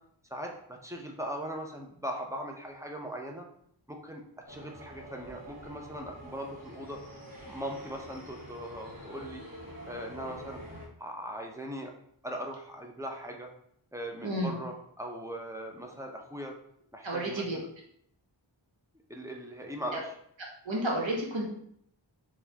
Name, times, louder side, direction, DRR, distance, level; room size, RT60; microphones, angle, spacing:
voice 1, 0.3-3.5 3.9-9.4 9.9-10.6 11.0-11.9 12.2-13.5 13.9-16.5 16.9-17.6 19.1-20.1, equal, 5° right, 1 dB, 0.5 m, -40 dB
sound 1, 4.5-10.9, equal, 45° right, 1.1 m, -46 dB
voice 2, 14.2-14.5 17.0-17.6 19.9-20.0 20.6-21.5, right 1 dB, 70° right, -2 dB, 1.0 m, -31 dB
4.0 x 2.3 x 2.7 m, 0.68 s
wide cardioid pair, 45°, 48 cm